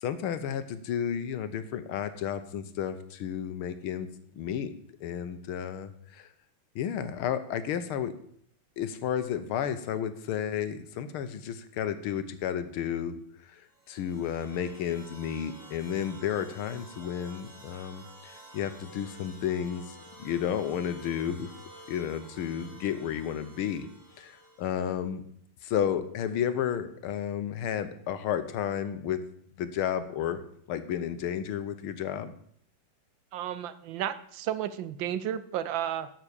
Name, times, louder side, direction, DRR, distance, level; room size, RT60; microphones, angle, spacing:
voice 1, 0.0-4.1 4.4-4.7 5.0-6.3 6.8-8.1 8.8-13.1 13.5-13.6 13.9-21.5 21.9-23.9 24.2-25.2 25.6-29.2 29.6-30.4 30.7-32.3, left 9 dB, 85° left, 11 dB, 1.7 m, -32 dB
sound 1, 13.7-24.9, right 1 dB, 25° right, 2.8 m, -51 dB
voice 2, 33.3-36.1, right 10 dB, 75° right, 14 dB, 1.3 m, -32 dB
12.0 x 6.1 x 6.9 m, 0.65 s
omnidirectional pair, 2.3 m